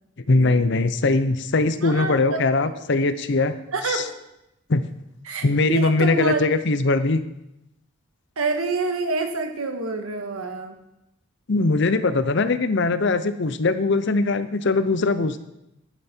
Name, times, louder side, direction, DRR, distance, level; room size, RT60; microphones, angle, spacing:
voice 1, 0.3-3.6 3.9-4.0 4.7-4.8 5.4-7.2 11.5-15.4, left 3 dB, 55° left, 12 dB, 0.6 m, -21 dB
voice 2, 1.8-2.4 3.7-4.1 5.2-6.4 8.4-10.8, right 3 dB, 85° right, 5 dB, 1.5 m, -27 dB
11.5 x 9.2 x 4.4 m, 0.86 s
head